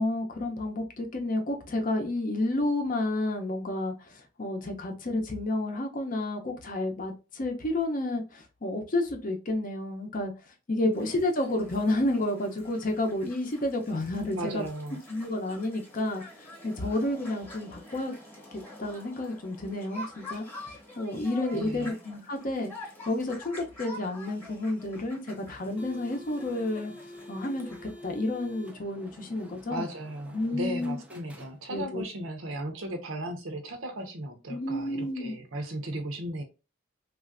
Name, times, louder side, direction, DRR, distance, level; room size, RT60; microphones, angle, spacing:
voice 1, 0.0-10.3 10.7-14.6 15.1-18.1 18.5-22.7 23.1-26.9 27.3-29.9 30.3-31.0 31.7-32.0 34.5-35.3, left 2 dB, 45° left, 0.6 m, -30 dB
sound 1, 10.9-27.9, left 1 dB, 10° left, 1.0 m, -47 dB
voice 2, 14.4-15.0 21.5-22.0 29.7-36.4, right 1 dB, 85° right, 0.7 m, -36 dB
sound 2, 25.5-32.0, left 1 dB, 5° right, 0.4 m, -48 dB
3.2 x 2.5 x 2.4 m
head